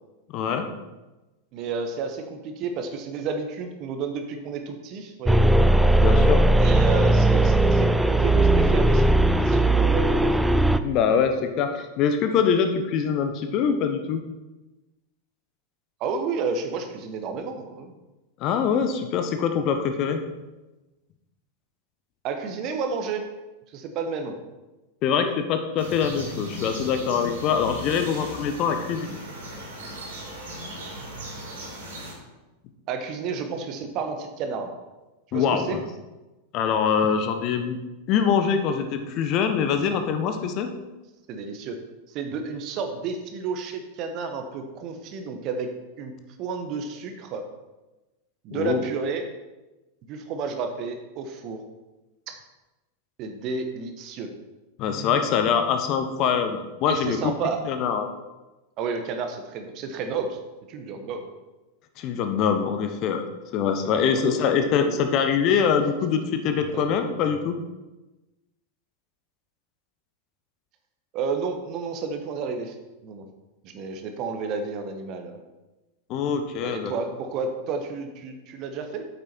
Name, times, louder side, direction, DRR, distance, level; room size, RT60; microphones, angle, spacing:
voice 1, 0.3-0.7 6.0-6.4 10.8-14.2 18.4-20.2 25.0-29.1 35.3-35.8 36.5-37.8 38.1-40.7 48.5-48.8 54.8-57.2 57.6-58.1 62.0-63.3 63.5-67.6 76.1-76.9, left 7 dB, 40° left, 7 dB, 1.1 m, -24 dB
voice 2, 1.5-5.5 6.6-10.3 16.0-17.9 22.2-23.3 23.7-24.4 32.9-34.7 35.3-35.8 41.3-41.8 42.1-45.7 46.0-46.1 46.4-47.4 48.4-49.2 50.1-51.6 52.3-52.4 53.2-54.3 56.9-57.6 58.8-60.4 60.7-61.3 64.1-64.4 66.7-66.8 71.1-72.8 73.0-73.2 73.6-75.4 76.6-79.1, right 5 dB, 40° right, 6 dB, 1.2 m, -31 dB
sound 1, 5.3-10.8, right 1 dB, 5° right, 0.4 m, -18 dB
sound 2, 25.8-32.1, equal, 60° right, 3.3 m, -37 dB
8.8 x 8.3 x 4.5 m, 1.1 s
figure-of-eight pair, 90°, 0 cm